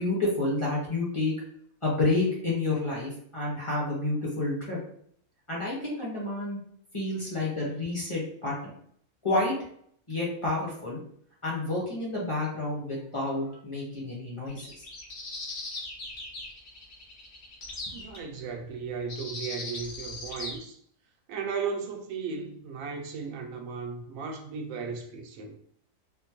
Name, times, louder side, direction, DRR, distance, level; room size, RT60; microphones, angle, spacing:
voice 1, 0.0-1.3 1.8-4.8 5.5-6.6 6.9-8.7 9.2-9.5 10.1-11.0 11.4-14.8, left 2 dB, 25° left, 0.9 m, -29 dB
sound 1, 14.5-18.2 19.1-20.6, left 2 dB, 50° left, 0.9 m, -39 dB
voice 2, 17.9-20.8 21.3-25.6, right 5 dB, 70° right, 1.0 m, -35 dB
3.6 x 2.2 x 2.9 m
omnidirectional pair, 1.6 m